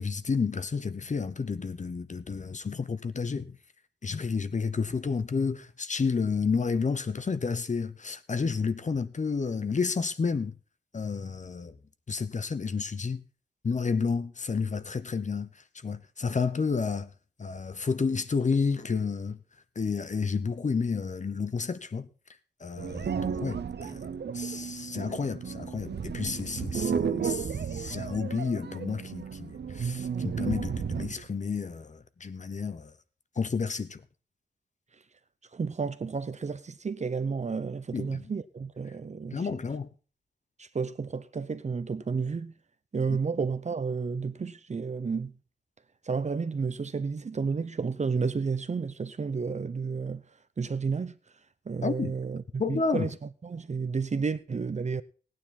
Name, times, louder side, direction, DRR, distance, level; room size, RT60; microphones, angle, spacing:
voice 1, 0.0-3.6 4.0-10.5 10.9-11.8 12.1-13.2 13.6-15.5 15.8-17.1 17.4-19.4 19.8-22.1 22.6-24.0 24.3-32.9 33.4-34.0 37.9-38.3 39.3-39.9 43.1-43.2 51.8-52.1 52.6-53.1, left 5 dB, 45° left, 0.8 m, -31 dB
sound 1, 22.8-31.3, right 7 dB, 70° right, 0.8 m, -33 dB
voice 2, 35.5-39.4 40.6-42.5 42.9-45.3 46.0-50.2 50.6-51.2 51.7-55.0, right 5 dB, 40° right, 0.6 m, -31 dB
17.0 x 9.5 x 4.2 m
wide cardioid pair, 125°, 18 cm